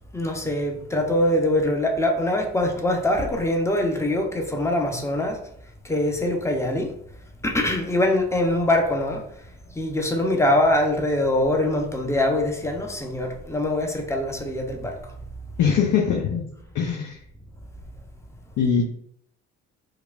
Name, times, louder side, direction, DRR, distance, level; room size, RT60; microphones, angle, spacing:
voice 1, 0.1-5.4 5.8-6.9 7.4-9.2 9.7-15.1, left 1 dB, 10° left, 2 dB, 0.8 m, -23 dB
voice 2, 15.6-16.4 16.7-17.2 18.6-18.8, left 7 dB, 55° left, -1 dB, 0.8 m, -21 dB
4.7 x 2.3 x 2.4 m, 0.69 s
hypercardioid pair, 45°, 36 cm